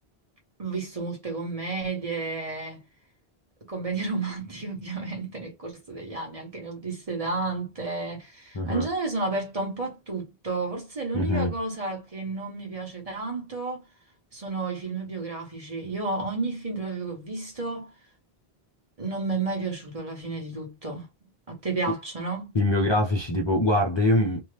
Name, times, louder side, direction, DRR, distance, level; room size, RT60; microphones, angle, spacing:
voice 1, 0.6-2.8 3.7-13.8 14.3-17.9 19.0-21.1 21.5-22.5, right 3 dB, 35° right, 1.1 m, -32 dB
voice 2, 11.1-11.5 22.5-24.4, left 1 dB, 35° left, 0.4 m, -23 dB
2.8 x 2.3 x 3.2 m
omnidirectional pair, 1.1 m